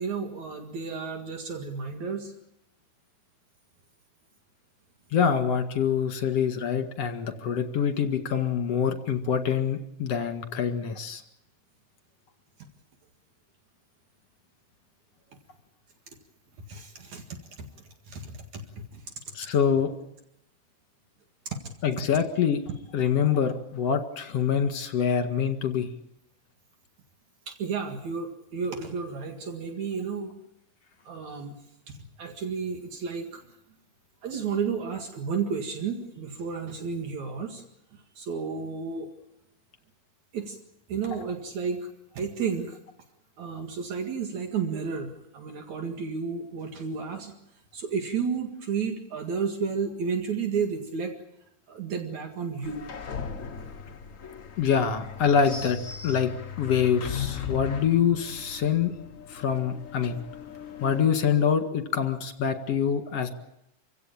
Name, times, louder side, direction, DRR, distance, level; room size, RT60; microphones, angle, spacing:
voice 1, 0.0-2.3 16.6-17.7 18.1-19.1 21.5-21.6 27.5-30.3 31.0-31.6 31.9-33.4 34.2-37.6 37.9-39.1 40.3-40.6 40.9-41.9 42.1-42.8 43.4-47.3 47.7-51.2 51.7-52.9, right 5 dB, 70° right, 4 dB, 3.3 m, -32 dB
voice 2, 5.1-11.2 19.3-19.9 21.8-22.6 22.9-25.9 54.6-56.3 56.6-58.9 59.3-60.2 60.8-63.3, left 7 dB, 60° left, 6 dB, 2.9 m, -25 dB
sound 1, 52.6-61.1, left 7 dB, 40° left, 1.1 m, -38 dB
26.5 x 16.5 x 8.8 m, 0.82 s
omnidirectional pair, 3.4 m